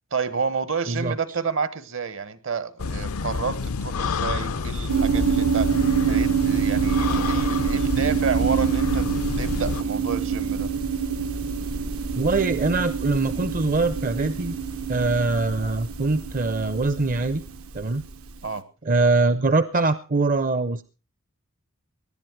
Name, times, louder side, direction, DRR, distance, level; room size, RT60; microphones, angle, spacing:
voice 1, 0.1-5.7 6.1-9.1 9.4-10.7 18.4-18.6, right 5 dB, 60° right, 15 dB, 1.3 m, -29 dB
sound 1, 2.8-9.8, left 4 dB, 90° left, 0.6 m, -28 dB
sound 2, 4.9-18.3, right 7 dB, 85° right, 1.4 m, -26 dB
voice 2, 12.2-14.6 14.9-17.4 17.7-18.0 18.8-20.8, right 3 dB, 40° right, 13 dB, 0.6 m, -23 dB
19.0 x 11.0 x 4.6 m, 0.33 s
head